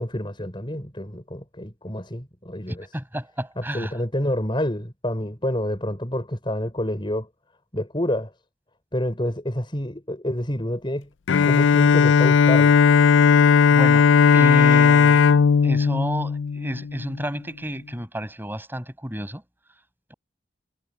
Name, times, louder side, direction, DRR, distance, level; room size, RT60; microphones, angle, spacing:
voice 1, 0.0-2.9 3.6-7.3 7.7-8.3 8.9-11.1 11.4-12.8, left 1 dB, 25° left, 6.0 m, -28 dB
voice 2, 2.7-3.9 13.7-15.2 15.6-19.4, right 1 dB, 10° right, 7.2 m, -31 dB
Bowed string instrument, 11.3-17.2, left 6 dB, 85° left, 0.5 m, -16 dB
head